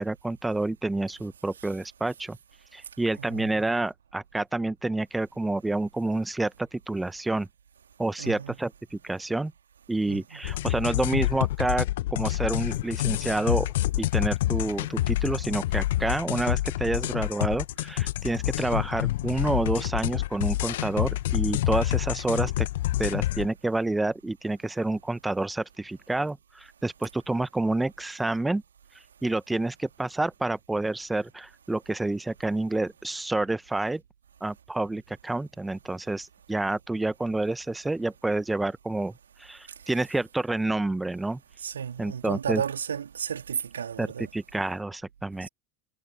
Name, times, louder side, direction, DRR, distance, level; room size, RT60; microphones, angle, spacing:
voice 1, 0.0-2.4 2.7-7.5 8.0-9.5 9.9-22.7 23.0-28.6 29.2-34.0 34.4-39.1 39.4-41.4 42.0-42.6 44.0-45.5, right 2 dB, 10° right, 1.3 m, -28 dB
voice 2, 3.2-3.6 8.2-8.6 10.1-10.4 41.6-44.3, right 8 dB, 75° right, 3.1 m, -33 dB
sound 1, 10.4-23.5, left 15 dB, 60° left, 1.3 m, -28 dB
figure-of-eight pair, 75°, 0 cm